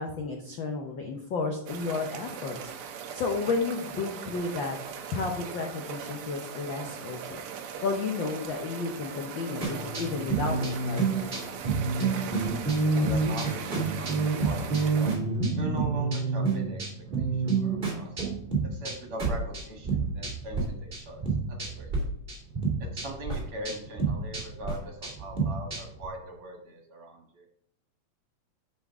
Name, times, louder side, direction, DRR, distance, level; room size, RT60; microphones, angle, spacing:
voice 1, 0.0-4.8 5.1-7.4 7.8-11.1, left 4 dB, 75° left, 2 dB, 1.1 m, -32 dB
sound 1, 1.7-15.2, right 7 dB, 75° right, 1.3 m, -40 dB
sound 2, 9.6-20.6 20.9-22.0 22.3-26.1, right 4 dB, 20° right, 2.1 m, -29 dB
voice 2, 11.9-12.3 12.9-15.2 15.5-16.8 17.2-18.1 18.7-22.1 22.8-27.4, right 1 dB, 50° right, 1 dB, 2.3 m, -41 dB
10.0 x 6.2 x 3.6 m, 0.72 s
omnidirectional pair, 3.4 m